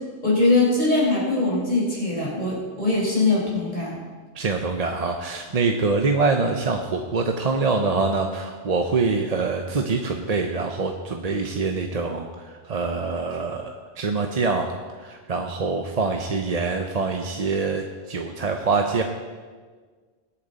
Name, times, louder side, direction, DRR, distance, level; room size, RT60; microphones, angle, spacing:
voice 1, 0.2-4.0, left 2 dB, 40° left, -5 dB, 4.7 m, -21 dB
voice 2, 4.3-19.0, right 4 dB, 40° right, 4 dB, 0.7 m, -25 dB
20.5 x 8.7 x 4.1 m, 1.5 s
omnidirectional pair, 1.1 m